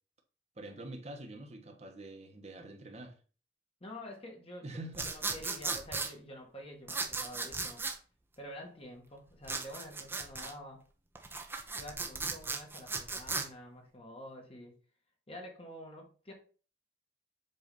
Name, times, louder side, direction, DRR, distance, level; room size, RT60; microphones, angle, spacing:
voice 1, 0.6-3.2 4.6-5.1, right 1 dB, 35° right, 1.1 m, -45 dB
voice 2, 3.8-7.8 8.4-10.8 11.7-14.8 15.3-16.3, equal, 30° left, 1.3 m, -48 dB
sound 1, 4.9-6.1 6.9-8.0 9.4-10.5 11.2-13.5, right 4 dB, 10° right, 0.7 m, -36 dB
7.8 x 2.7 x 5.3 m
head